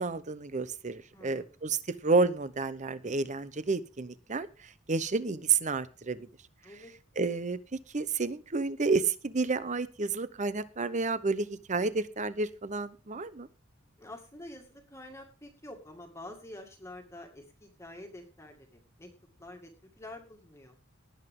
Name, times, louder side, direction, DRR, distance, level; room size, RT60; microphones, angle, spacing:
voice 1, 0.0-6.3 7.2-13.5, right 4 dB, 35° right, 15 dB, 0.8 m, -30 dB
voice 2, 1.1-1.5 6.6-6.9 14.0-19.1 19.4-19.7 20.0-20.8, left 1 dB, 15° left, 2 dB, 2.1 m, -47 dB
19.0 x 7.9 x 3.7 m, 0.34 s
head